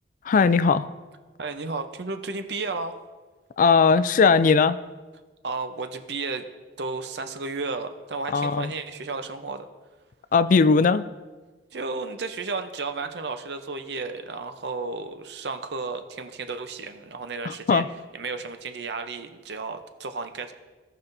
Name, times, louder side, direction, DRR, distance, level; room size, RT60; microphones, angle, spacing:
voice 1, 0.2-0.9 3.6-4.8 8.3-8.7 10.3-11.1 17.4-17.9, left 5 dB, 45° left, 14 dB, 0.3 m, -19 dB
voice 2, 1.4-3.0 5.4-6.5 6.8-9.7 11.7-17.8 18.1-20.5, right 3 dB, 65° right, 8 dB, 0.7 m, -33 dB
16.5 x 5.6 x 2.6 m, 1.3 s
head